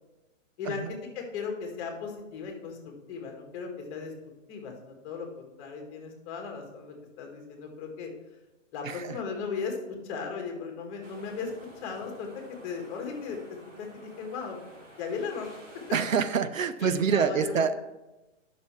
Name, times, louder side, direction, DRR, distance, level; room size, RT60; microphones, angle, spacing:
voice 1, 0.6-2.8 3.1-4.1 4.5-8.1 8.7-11.5 11.8-12.3 12.6-13.4 13.8-14.6 15.0-15.9 16.8-17.8, left 5 dB, 25° left, 3 dB, 1.8 m, -37 dB
voice 2, 8.8-9.2 15.9-17.7, right 6 dB, 90° right, 12 dB, 0.8 m, -26 dB
sound 1, 11.0-16.1, right 1 dB, 70° right, 3.3 m, -51 dB
9.5 x 6.3 x 4.6 m, 1.1 s
hypercardioid pair, 145°, 38 cm